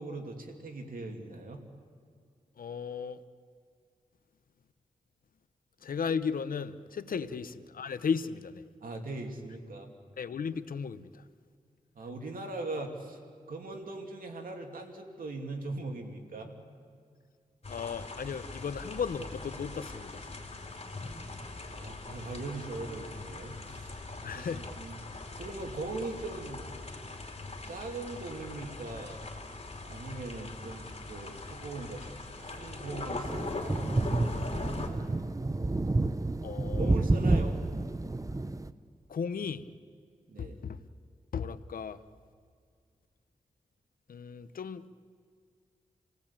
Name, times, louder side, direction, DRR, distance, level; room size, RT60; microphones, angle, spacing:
voice 1, 0.0-1.6 7.2-7.3 8.8-9.9 11.9-13.2 13.5-16.6 21.7-24.0 24.3-25.0 25.4-26.6 27.7-29.2 29.8-34.8 36.8-37.6 40.3-40.6, right 2 dB, 90° right, 3 dB, 2.8 m, -40 dB
voice 2, 2.6-3.2 5.8-8.6 10.2-11.2 17.7-20.3 24.2-24.6 36.4-37.0 39.1-39.7 40.4-40.8 41.3-42.0 44.1-44.8, left 6 dB, 90° left, 13 dB, 0.8 m, -35 dB
sound 1, 17.6-34.9, left 3 dB, 45° left, 3.4 m, -41 dB
sound 2, 33.2-38.7, right 2 dB, 25° right, 0.8 m, -29 dB
28.5 x 18.0 x 8.7 m, 2.2 s
wide cardioid pair, 85°, 14 cm